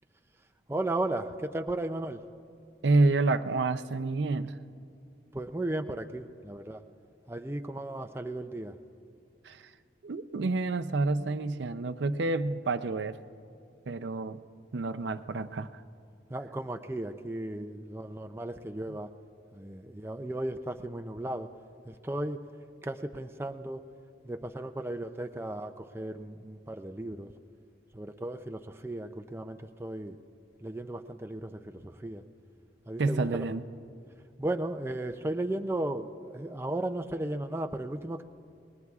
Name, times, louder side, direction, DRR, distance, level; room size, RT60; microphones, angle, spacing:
voice 1, 0.7-2.2 5.3-6.8 7.3-8.8 16.3-19.1 19.5-21.5 21.9-22.4 22.8-23.8 24.2-27.3 27.9-30.2 30.6-32.2 32.9-33.4 34.4-38.2, right 1 dB, 15° right, 6 dB, 0.4 m, -35 dB
voice 2, 2.8-4.6 9.4-9.6 10.0-13.2 13.9-14.4 14.7-15.8 33.0-33.6, right 3 dB, 70° right, 11 dB, 0.5 m, -28 dB
28.5 x 21.0 x 2.4 m, 2.5 s
head